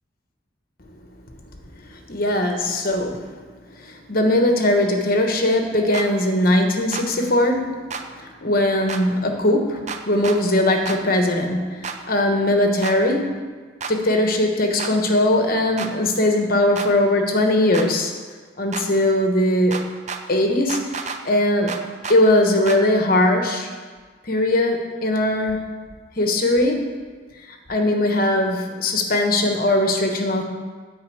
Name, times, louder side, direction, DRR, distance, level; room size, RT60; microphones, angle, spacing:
voice 1, 1.9-3.3 3.8-7.8 8.2-13.4 13.9-18.1 18.6-19.8 20.3-21.8 22.1-23.7 24.2-25.6 26.2-26.9 27.7-30.4, left 1 dB, 50° left, 4 dB, 1.2 m, -20 dB
sound 1, 5.9-6.1 6.9-7.1 7.9-8.0 8.9-9.0 9.9-10.4 10.9-11.0 11.8-12.0 12.8-13.0 13.8-13.9 14.8-14.9 15.8-15.9 16.8-16.9 17.7-17.9 18.7-18.9 19.7-20.2 20.7-21.2 21.7-22.2 22.7-22.8, right 5 dB, 35° right, 0.6 m, -30 dB
9.7 x 5.4 x 7.8 m, 1.5 s
head